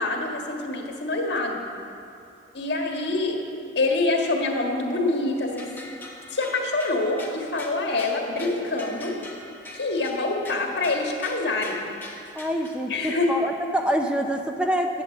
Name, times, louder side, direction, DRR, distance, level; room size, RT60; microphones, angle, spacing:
voice 1, 0.0-1.6 2.5-3.4 3.7-5.7 6.3-9.2 9.7-11.8 12.9-13.3, left 2 dB, 70° left, 1 dB, 1.6 m, -25 dB
sound 1, 5.3-12.7, left 2 dB, 10° left, 1.1 m, -43 dB
voice 2, 12.3-15.0, equal, 5° right, 3 dB, 0.5 m, -26 dB
11.5 x 8.3 x 7.1 m, 2.6 s
head